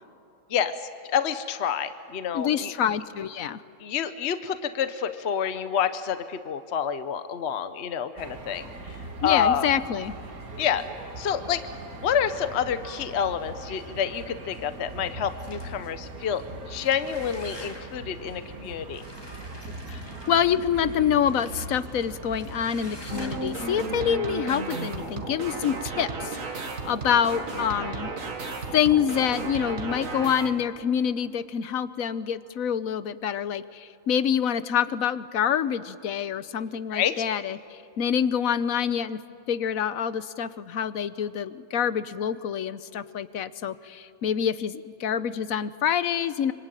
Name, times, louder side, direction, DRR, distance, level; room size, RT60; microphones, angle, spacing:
voice 1, 1.1-2.7 3.8-9.7 10.6-10.8 11.2-11.6 12.0-19.0 36.9-37.2, left 8 dB, 55° left, 11 dB, 1.1 m, -28 dB
voice 2, 2.3-3.6 9.2-10.1 19.9-28.1 28.7-39.2 39.5-46.5, left 8 dB, 75° left, 15 dB, 1.3 m, -26 dB
sound 1, 8.2-24.2, right 2 dB, 85° right, 2.5 m, -41 dB
sound 2, 15.4-16.0 16.6-18.1 18.9-20.6 21.3-21.8 22.3-23.7, left 1 dB, 15° left, 2.3 m, -46 dB
sound 3, 23.1-30.5, right 3 dB, 65° right, 2.3 m, -33 dB
25.5 x 25.0 x 9.1 m, 2.7 s
omnidirectional pair, 1.5 m